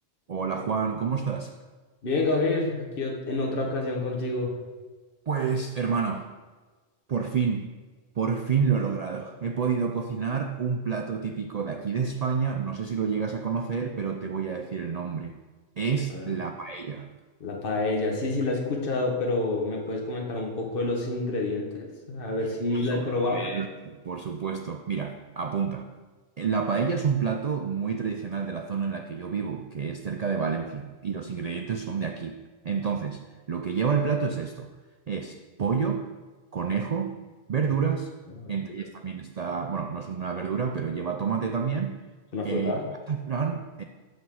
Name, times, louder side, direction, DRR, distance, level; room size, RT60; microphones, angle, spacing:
voice 1, 0.3-1.5 5.3-6.3 7.1-7.7 8.2-15.3 15.8-17.1 22.7-25.9 26.4-32.4 32.6-33.2 33.5-34.7 35.1-36.1 36.5-37.2 37.5-38.1 38.5-42.0 42.4-42.7 43.1-43.8, right 6 dB, 80° right, 4 dB, 0.3 m, -29 dB
voice 2, 2.0-4.5 16.1-16.4 17.4-23.4 38.3-38.5 42.3-42.8, left 2 dB, 45° left, 0 dB, 1.4 m, -28 dB
5.9 x 5.6 x 6.9 m, 1.3 s
omnidirectional pair, 1.3 m